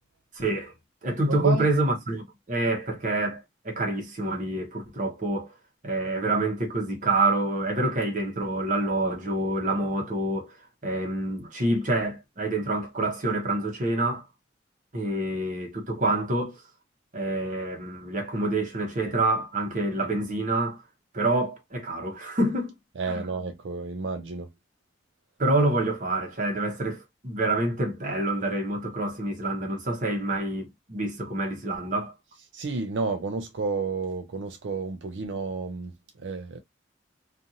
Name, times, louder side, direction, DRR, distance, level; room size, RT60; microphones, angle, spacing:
voice 1, 0.3-0.7 1.0-3.4 3.6-5.5 5.8-10.6 10.8-14.3 14.9-16.6 17.1-20.8 21.1-22.7 23.0-23.2 25.4-32.1, right 2 dB, 45° right, 0.9 m, -27 dB
voice 2, 1.3-1.7 23.0-24.5 32.5-36.6, right 4 dB, 75° right, 0.5 m, -31 dB
2.5 x 2.5 x 2.7 m
head